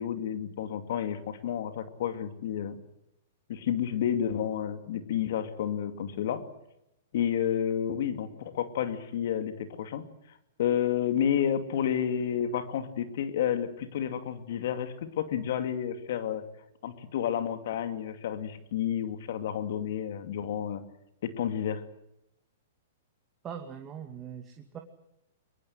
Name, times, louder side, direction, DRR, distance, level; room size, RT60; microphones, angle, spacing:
voice 1, 0.0-2.8 3.5-6.4 7.1-10.1 10.6-16.4 16.8-20.8 21.2-21.8, left 9 dB, 60° left, 9 dB, 2.5 m, -30 dB
voice 2, 23.4-24.8, right 8 dB, 25° right, 4 dB, 2.5 m, -41 dB
23.0 x 22.5 x 7.9 m, 0.83 s
hypercardioid pair, 120°, 0 cm